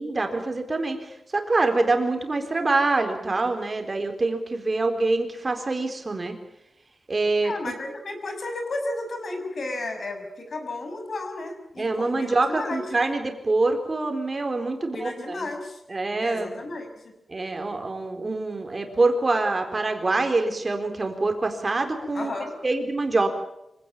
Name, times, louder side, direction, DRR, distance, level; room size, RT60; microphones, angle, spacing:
voice 1, 0.0-6.4 7.1-7.7 11.8-15.5 15.9-16.6 17.3-22.3 22.6-23.3, right 3 dB, 35° right, 5 dB, 4.0 m, -25 dB
voice 2, 7.4-12.8 14.8-15.8 16.2-17.1 22.1-22.5, left 2 dB, 55° left, 5 dB, 6.1 m, -33 dB
25.5 x 17.0 x 9.0 m, 0.87 s
wide cardioid pair, 135°, 0 cm